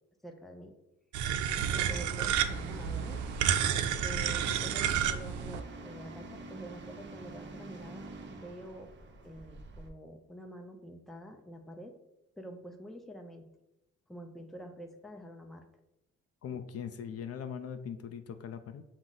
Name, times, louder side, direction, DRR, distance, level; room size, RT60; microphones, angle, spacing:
voice 1, 0.2-0.7 1.6-3.4 4.0-8.9 9.2-11.9 12.4-13.5 14.1-15.7 16.5-16.6, right 1 dB, ahead, 4 dB, 0.5 m, -47 dB
sound 1, 1.1-5.6, right 9 dB, 75° right, 0.5 m, -30 dB
sound 2, 1.5-9.9, right 2 dB, 40° right, 0.7 m, -46 dB
voice 2, 4.2-4.7 16.4-18.8, left 7 dB, 55° left, 9 dB, 0.4 m, -41 dB
6.0 x 2.1 x 3.8 m, 0.89 s
cardioid pair, 90°, 30 cm